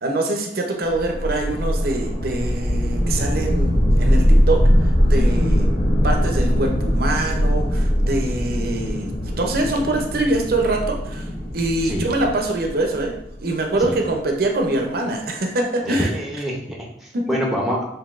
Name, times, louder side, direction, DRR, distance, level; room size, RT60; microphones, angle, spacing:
voice 1, 0.0-5.7 6.0-11.3 11.5-13.1 13.4-16.1 17.1-17.3, right 2 dB, 50° right, 2 dB, 0.5 m, -24 dB
sound 1, 0.9-14.0, equal, 65° left, 1.0 m, -21 dB
voice 2, 11.8-12.2 13.9-14.0 15.8-17.9, equal, ahead, -2 dB, 0.6 m, -26 dB
5.8 x 2.6 x 2.4 m, 0.78 s
head